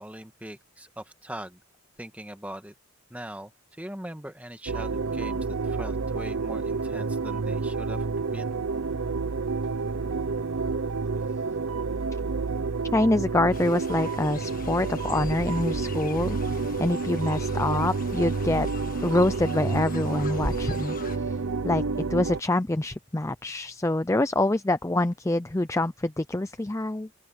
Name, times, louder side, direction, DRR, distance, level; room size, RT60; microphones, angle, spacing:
voice 1, 0.0-1.6 2.0-2.7 3.1-3.5 3.8-8.6, right 1 dB, 5° right, 1.6 m, -41 dB
sound 1, 4.7-22.4, right 4 dB, 70° right, 0.7 m, -29 dB
voice 2, 12.9-18.7 19.0-21.4 21.6-27.2, left 2 dB, 15° left, 0.5 m, -26 dB
Fowl, 13.5-21.2, left 2 dB, 40° left, 1.6 m, -41 dB
open air
head